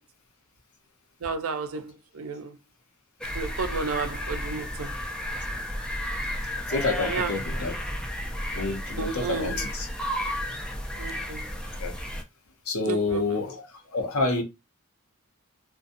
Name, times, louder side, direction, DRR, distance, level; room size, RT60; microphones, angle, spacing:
voice 1, 1.2-2.5 3.3-4.9 6.9-7.4 9.0-9.7 11.0-11.4 12.8-13.5, right 4 dB, 75° right, 0.5 m, -32 dB
sound 1, 3.2-12.2, equal, 5° left, 0.3 m, -33 dB
voice 2, 6.7-7.7 8.5-9.9 11.8-11.9 12.7-13.6 13.9-14.4, left 3 dB, 75° left, 0.7 m, -28 dB
2.6 x 2.2 x 2.5 m
head